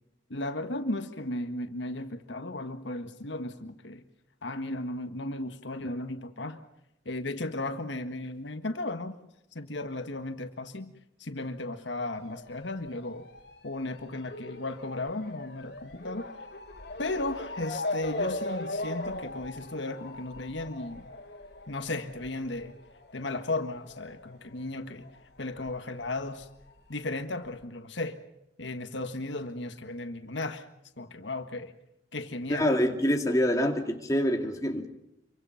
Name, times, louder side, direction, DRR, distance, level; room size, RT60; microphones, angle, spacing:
voice 1, 0.3-4.0 4.4-6.6 7.0-9.2 9.5-13.3 13.6-16.3 17.0-21.1 21.7-22.8 23.1-25.1 25.4-26.5 26.9-28.2 28.6-30.7 31.0-31.7 32.1-32.7, left 2 dB, 75° left, 8 dB, 1.6 m, -35 dB
Motor vehicle (road) / Siren, 12.2-25.2 25.4-26.6 27.3-27.4 27.6-27.7, left 2 dB, 60° left, 3.3 m, -39 dB
voice 2, 32.5-34.9, equal, 20° left, 2 dB, 2.3 m, -26 dB
27.5 x 24.0 x 5.8 m, 0.82 s
head